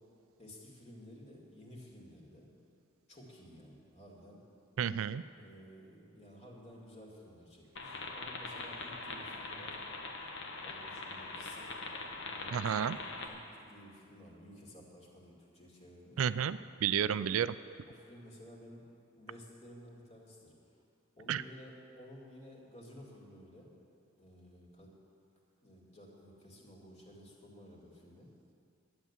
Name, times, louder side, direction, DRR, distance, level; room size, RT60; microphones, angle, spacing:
voice 1, 0.4-2.5 3.1-4.4 5.4-9.8 10.6-11.7 12.1-16.3 17.9-18.8 19.1-20.8 21.2-23.7 24.2-24.9 25.6-28.3, equal, 30° left, -2 dB, 2.3 m, -54 dB
voice 2, 4.8-5.2 12.5-13.0 16.2-17.5 21.3-21.4, right 8 dB, 70° right, 15 dB, 0.3 m, -31 dB
sound 1, 7.8-13.3, left 3 dB, 60° left, 1.2 m, -42 dB
11.0 x 9.7 x 7.3 m, 2.5 s
head